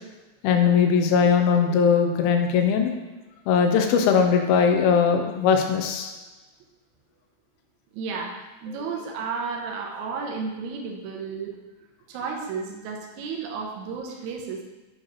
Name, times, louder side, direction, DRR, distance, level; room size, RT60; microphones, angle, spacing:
voice 1, 0.4-2.9 3.5-6.1, left 6 dB, 90° left, 4 dB, 2.5 m, -20 dB
voice 2, 7.9-11.6 12.1-14.6, right 5 dB, 80° right, 0 dB, 1.7 m, -32 dB
8.7 x 3.9 x 3.1 m, 1.2 s
omnidirectional pair, 4.1 m